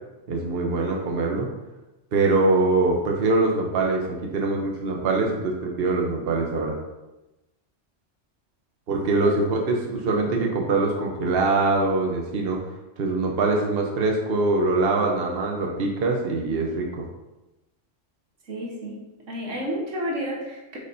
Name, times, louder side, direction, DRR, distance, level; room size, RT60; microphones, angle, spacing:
voice 1, 0.3-1.5 2.1-6.8 8.9-12.6 13.0-17.0, right 3 dB, 55° right, 0 dB, 1.1 m, -23 dB
voice 2, 18.5-19.0 19.3-20.8, equal, 85° right, -2 dB, 1.7 m, -31 dB
8.1 x 5.3 x 2.7 m, 1.0 s
omnidirectional pair, 1.2 m